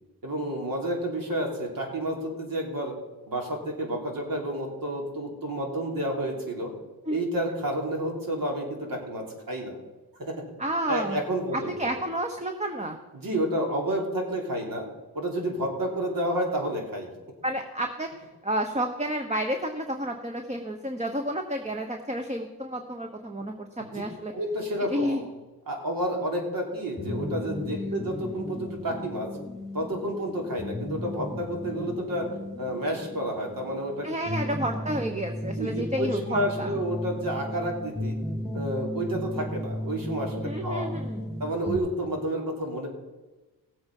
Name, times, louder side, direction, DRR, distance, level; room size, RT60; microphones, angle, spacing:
voice 1, 0.2-2.9 3.3-6.7 7.1-9.8 10.2-10.3 10.9-11.7 13.1-14.9 15.1-17.1 23.8-24.0 24.3-25.2 25.7-29.3 29.7-32.3 32.6-34.1 35.5-38.1 38.5-40.9 41.4-42.9, right 1 dB, 60° right, 1 dB, 3.3 m, -30 dB
voice 2, 10.6-11.2 11.5-13.0 17.4-24.3 24.9-25.2 34.0-36.7 40.4-41.2, right 1 dB, 20° right, 4 dB, 1.1 m, -30 dB
sound 1, 27.0-41.8, left 1 dB, ahead, 1.9 m, -35 dB
17.0 x 7.9 x 5.4 m, 1.2 s
cardioid pair, 85°, 38 cm